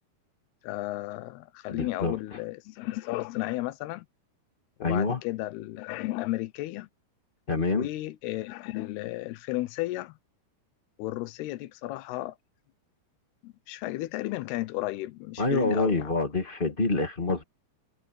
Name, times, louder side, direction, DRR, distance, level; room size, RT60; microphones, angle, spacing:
voice 1, 0.6-4.1 4.8-6.9 7.7-10.2 11.0-12.4 13.4-16.1, left 17 dB, 85° left, 2.8 m, -33 dB
voice 2, 1.7-2.2 4.8-5.2 7.5-7.9 15.4-17.4, left 3 dB, 30° left, 0.9 m, -26 dB
omnidirectional pair, 4.6 m